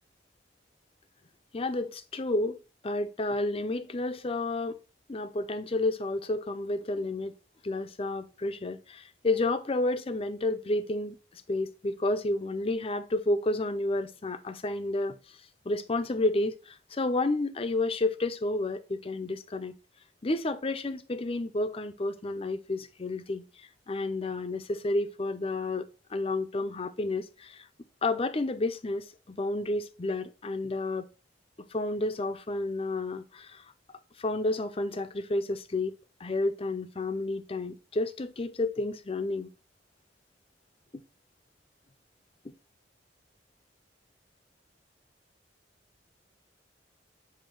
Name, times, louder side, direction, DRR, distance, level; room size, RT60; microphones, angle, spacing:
voice 1, 1.5-2.6 2.8-4.8 5.1-7.3 7.6-15.4 15.6-19.7 20.2-25.8 26.1-27.7 28.0-31.1 31.6-33.6 34.2-35.9 36.2-39.5, left 2 dB, 30° left, 0.6 m, -31 dB
7.8 x 2.8 x 4.4 m
head